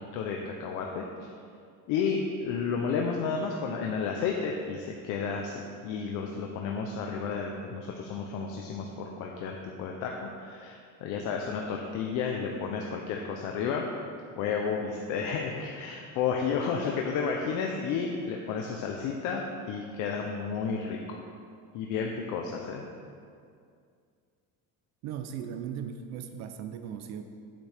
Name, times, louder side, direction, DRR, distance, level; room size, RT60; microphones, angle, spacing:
voice 1, 0.1-1.1 1.9-13.9 14.4-21.2 21.7-22.8, left 5 dB, 65° left, 1 dB, 0.8 m, -32 dB
voice 2, 25.0-27.2, right 8 dB, 55° right, 8 dB, 0.6 m, -37 dB
9.0 x 8.5 x 3.5 m, 2.3 s
cardioid pair, 170°, 33 cm